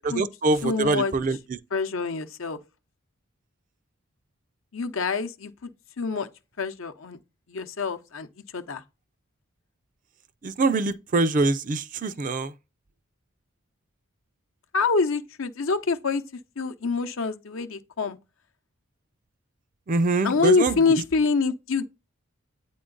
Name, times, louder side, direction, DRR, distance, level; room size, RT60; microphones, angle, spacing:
voice 1, 0.0-1.6 10.4-12.5 19.9-21.0, right 3 dB, 40° right, 0.4 m, -24 dB
voice 2, 0.6-1.1 1.7-2.6 4.7-5.7 6.0-6.3 6.6-7.2 7.5-8.3 8.5-8.8 14.7-16.2 16.6-18.2 20.2-21.8, left 4 dB, 70° left, 0.7 m, -25 dB
8.8 x 3.7 x 3.8 m
head